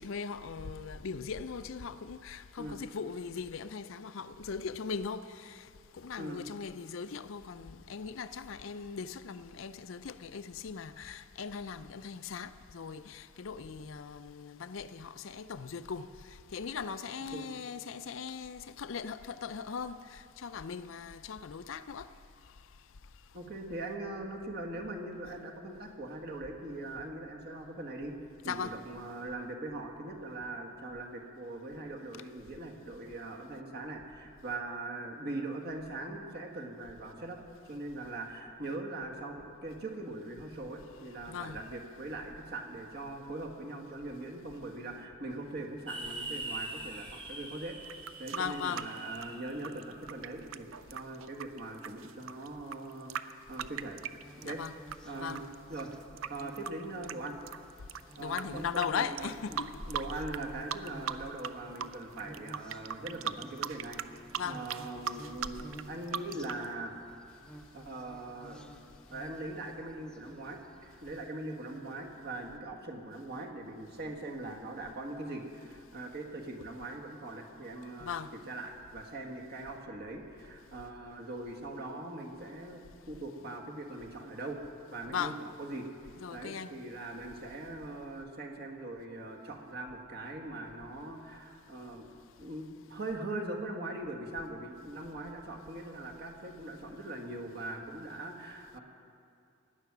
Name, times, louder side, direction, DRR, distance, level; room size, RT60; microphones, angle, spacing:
voice 1, 0.0-5.6 5.9-16.1 16.5-22.1 28.5-28.7 41.3-41.6 48.3-48.9 54.4-54.8 55.1-55.4 58.2-59.7 64.3-64.6 78.0-78.3 85.1-85.4 86.2-86.7, left 6 dB, 70° left, 0.5 m, -39 dB
voice 2, 23.3-28.1 28.4-37.4 37.7-54.0 54.4-54.6 55.1-55.4 55.7-55.9 56.3-57.4 58.2-59.6 59.9-64.0 64.5-66.9 67.7-68.6 69.1-84.6 84.9-85.3 85.6-85.9 86.3-92.1 92.4-98.8, right 2 dB, 50° right, 1.7 m, -41 dB
sound 1, 45.9-50.1, right 2 dB, 25° right, 1.7 m, -43 dB
sound 2, 47.8-55.0 55.3-58.4 58.7-58.9 59.2-60.4 60.7-61.5 61.8-66.6, right 8 dB, 70° right, 0.5 m, -39 dB
sound 3, 53.5-71.3, equal, 5° left, 0.8 m, -51 dB
17.0 x 10.5 x 6.1 m
head